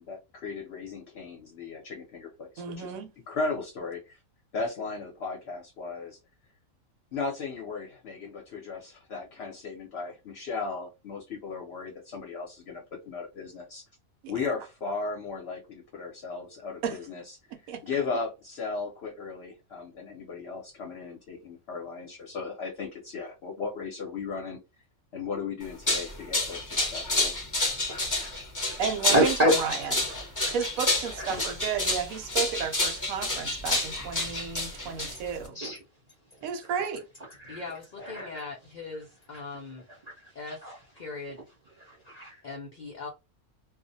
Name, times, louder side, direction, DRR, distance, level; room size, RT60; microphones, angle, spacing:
voice 1, 0.0-2.9 3.3-4.2 4.5-6.2 7.1-13.8 14.3-17.4 17.8-24.6 25.1-27.3, left 4 dB, 60° left, 0.8 m, -36 dB
voice 2, 2.6-3.1 14.2-14.3 16.8-17.0 17.5-17.8 28.8-29.9 30.5-35.6 36.4-37.0, right 7 dB, 75° right, 1.0 m, -32 dB
sound 1, 25.6-35.5, left 2 dB, 25° left, 0.4 m, -29 dB
voice 3, 29.1-29.5 29.8-30.5 31.2-31.5 34.8-35.2 35.5-35.8 36.7-36.8 37.4-37.6 38.0-38.3 40.2-40.7 41.8-42.4, equal, 50° right, 0.5 m, -28 dB
voice 4, 37.5-39.9 40.3-40.6 41.0-41.4 42.4-43.1, left 3 dB, 85° left, 0.4 m, -40 dB
2.4 x 2.0 x 2.6 m
omnidirectional pair, 1.5 m